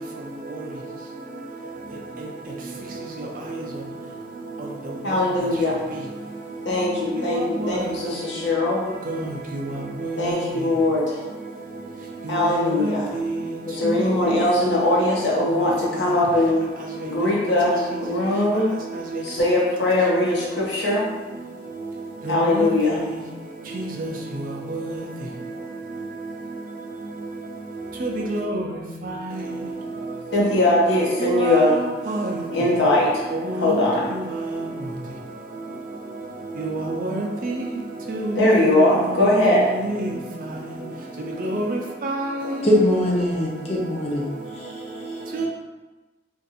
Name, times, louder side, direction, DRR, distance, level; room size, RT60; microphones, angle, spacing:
voice 1, 5.0-5.8 6.6-8.8 10.2-11.2 12.3-13.1 13.7-16.6 17.0-18.7 19.2-21.1 22.3-23.0 30.3-31.7 32.5-33.3 33.6-34.1 38.3-39.7, left 1 dB, 75° left, 0.9 m, -20 dB
voice 2, 22.3-22.7 23.7-24.1 24.7-24.9 28.0-28.6 31.3-31.7 32.1-32.4 33.3-33.8 36.6-37.5 38.1-39.0 39.6-40.1 41.4-42.5 45.3-45.5, right 1 dB, 45° right, 0.4 m, -27 dB
voice 3, 42.6-44.3 44.5-45.2, left 1 dB, 35° left, 0.6 m, -22 dB
2.6 x 2.5 x 4.0 m
head